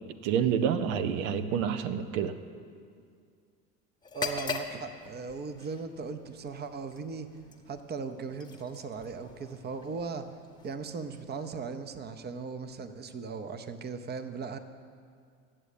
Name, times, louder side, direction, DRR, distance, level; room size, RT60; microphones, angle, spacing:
voice 1, 0.2-2.3, right 8 dB, 80° right, 10 dB, 0.7 m, -28 dB
sound 1, 4.0-11.8, left 4 dB, 10° left, 0.9 m, -42 dB
voice 2, 4.1-7.3 7.7-10.3 10.6-14.6, right 5 dB, 25° right, 10 dB, 0.7 m, -38 dB
9.0 x 7.1 x 8.3 m, 2.2 s
hypercardioid pair, 85°, 41 cm